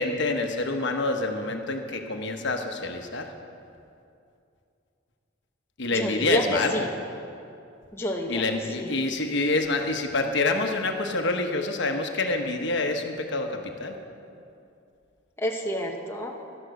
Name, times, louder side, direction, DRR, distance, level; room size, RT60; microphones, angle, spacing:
voice 1, 0.0-3.3 5.8-6.9 8.3-14.0, left 2 dB, 60° left, 4 dB, 1.1 m, -27 dB
voice 2, 5.9-6.8 7.9-8.4 8.8-8.9 15.4-16.4, equal, 10° left, 0 dB, 0.9 m, -28 dB
12.0 x 11.5 x 6.5 m, 2.5 s
head